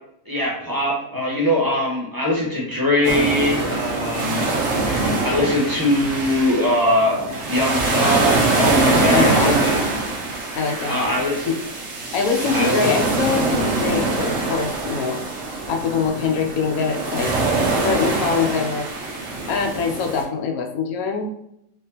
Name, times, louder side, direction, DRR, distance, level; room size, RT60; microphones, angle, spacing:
voice 1, 0.3-4.5 4.8-9.8 10.6-11.5 12.5-12.9, left 1 dB, 15° right, -6 dB, 1.1 m, -22 dB
sound 1, 3.0-20.2, right 2 dB, 60° right, 1.1 m, -23 dB
voice 2, 9.1-9.5 10.5-11.1 11.5-11.6 12.1-15.2 15.7-17.3 17.8-18.9 19.5-21.3, left 5 dB, 90° left, 3 dB, 1.2 m, -23 dB
3.8 x 3.5 x 2.9 m, 0.77 s
omnidirectional pair, 1.5 m